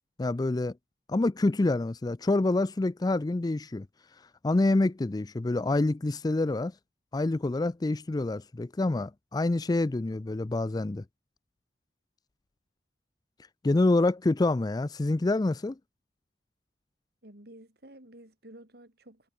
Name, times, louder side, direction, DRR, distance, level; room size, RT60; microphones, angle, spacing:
voice 1, 0.2-0.7 1.1-3.9 4.4-6.7 7.1-11.0 13.6-15.8, left 2 dB, 20° left, 0.4 m, -27 dB
voice 2, 17.2-19.3, right 1 dB, 60° right, 4.4 m, -51 dB
head